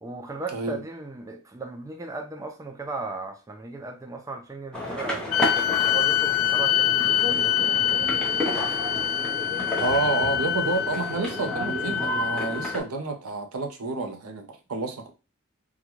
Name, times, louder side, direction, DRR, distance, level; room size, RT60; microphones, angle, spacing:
voice 1, 0.0-5.3 5.8-8.2, right 3 dB, 15° right, 0.3 m, -36 dB
sound 1, 4.7-12.8, left 1 dB, 5° left, 0.7 m, -32 dB
sound 2, 5.3-12.8, left 11 dB, 75° left, 0.3 m, -25 dB
voice 2, 9.8-15.1, right 3 dB, 75° right, 0.7 m, -29 dB
3.7 x 2.2 x 3.0 m
head